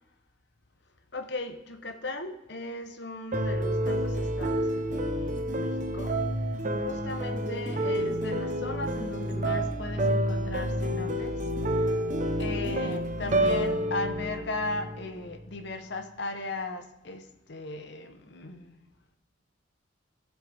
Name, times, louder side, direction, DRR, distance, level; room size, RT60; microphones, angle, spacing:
voice 1, 1.1-6.1 6.8-11.3 12.4-18.8, left 2 dB, 55° left, 7 dB, 0.9 m, -37 dB
sound 1, 3.3-15.4, right 1 dB, 40° right, 0.9 m, -29 dB
15.5 x 7.4 x 3.4 m, 1.0 s
head